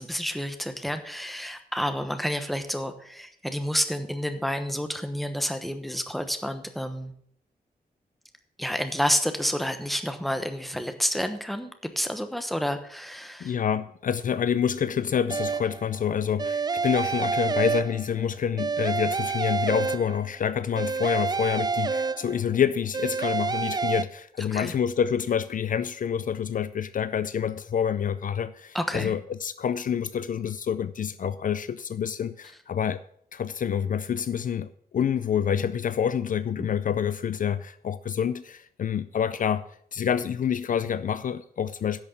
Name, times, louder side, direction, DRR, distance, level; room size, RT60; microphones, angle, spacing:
voice 1, 0.0-7.1 8.6-13.6 24.5-24.7 28.7-29.1 36.6-36.7, equal, ahead, 1.1 m, -29 dB
voice 2, 13.4-33.0 33.3-39.6 39.9-42.0, left 8 dB, 60° left, 0.4 m, -27 dB
sound 1, 15.3-15.9 16.4-18.3 18.6-20.4 20.8-22.6 22.9-24.0, right 5 dB, 25° right, 0.4 m, -28 dB
10.5 x 6.4 x 7.4 m
wide cardioid pair, 150°, 16 cm